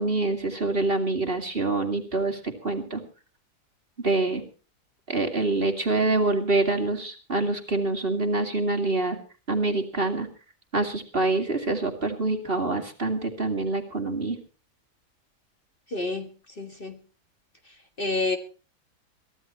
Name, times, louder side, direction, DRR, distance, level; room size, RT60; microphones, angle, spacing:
voice 1, 0.0-3.0 4.0-4.4 5.1-9.2 9.5-10.3 10.7-14.4, right 2 dB, 35° right, 5 dB, 2.4 m, -26 dB
voice 2, 15.9-16.3 16.6-17.0 18.0-18.4, left 3 dB, 35° left, 5 dB, 1.9 m, -28 dB
23.0 x 15.0 x 3.1 m, 0.36 s
omnidirectional pair, 1.7 m